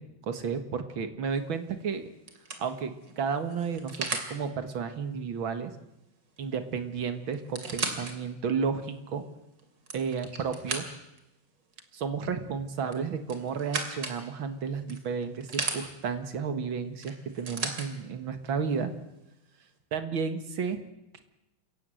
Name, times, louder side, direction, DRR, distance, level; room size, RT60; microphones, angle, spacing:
voice 1, 0.0-2.1 2.6-5.7 6.4-9.2 9.9-10.8 11.9-18.9 19.9-20.8 21.1-21.2, right 6 dB, 80° right, 9 dB, 2.4 m, -32 dB
sound 1, 1.4-1.7 2.3-4.3 6.4-6.5 6.7-6.8 7.3-8.1 8.7-8.8 9.6-11.2 12.9-14.2 14.9-15.8 17.0-17.9 18.8-18.9, right 4 dB, 60° right, 3.3 m, -35 dB
28.0 x 16.5 x 7.8 m, 0.91 s
omnidirectional pair, 2.2 m